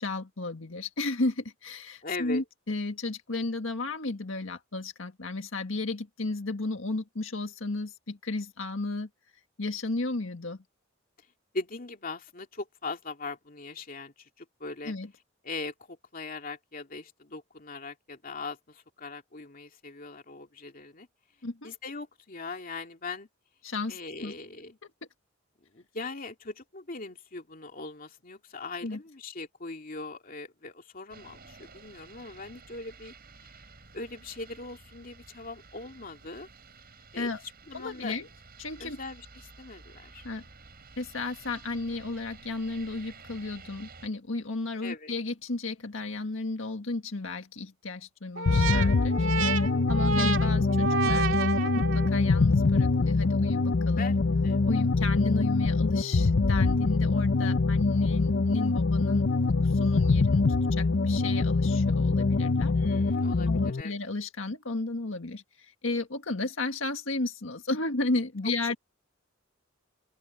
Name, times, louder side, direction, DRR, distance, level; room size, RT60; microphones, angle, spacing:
voice 1, 0.0-9.1 9.6-10.6 14.9-15.1 21.4-21.7 23.6-24.3 28.8-29.0 37.2-37.4 37.7-38.3 38.6-39.0 40.2-40.5 41.0-49.3 49.9-51.3 51.8-54.1 54.7-62.7 63.5-68.7, left 2 dB, 80° left, 1.8 m, -33 dB
voice 2, 2.0-2.4 11.5-14.9 15.4-21.1 21.6-23.3 23.9-24.8 25.7-33.1 33.4-33.5 33.9-36.5 37.1-37.3 37.7-38.2 38.8-40.2 44.8-45.1 54.0-54.2 54.4-54.7 62.8-63.9 68.4-68.5, left 3 dB, 45° left, 2.6 m, -40 dB
sound 1, 31.1-44.1, right 4 dB, 50° right, 6.5 m, -52 dB
sound 2, 48.4-52.3, right 4 dB, 80° right, 2.0 m, -30 dB
sound 3, 48.5-63.8, left 3 dB, 60° left, 0.7 m, -24 dB
open air
head